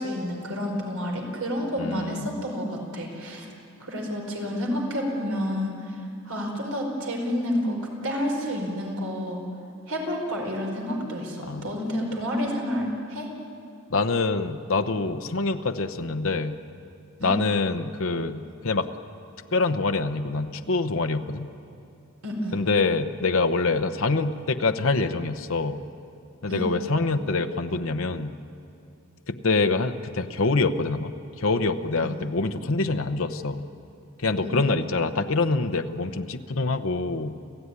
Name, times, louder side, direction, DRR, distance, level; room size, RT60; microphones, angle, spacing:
voice 1, 0.0-3.5 3.8-7.8 8.0-9.4 9.9-13.3 17.2-17.4 22.2-22.6 26.5-26.7 32.0-32.1 34.4-34.6, equal, 75° right, 1 dB, 4.8 m, -29 dB
voice 2, 1.8-2.3 11.4-11.7 13.9-16.6 17.2-18.9 19.5-21.5 22.5-25.8 26.4-28.3 29.3-33.6 34.2-37.4, left 3 dB, 65° left, 8 dB, 0.9 m, -25 dB
30.0 x 15.0 x 9.8 m, 2.6 s
head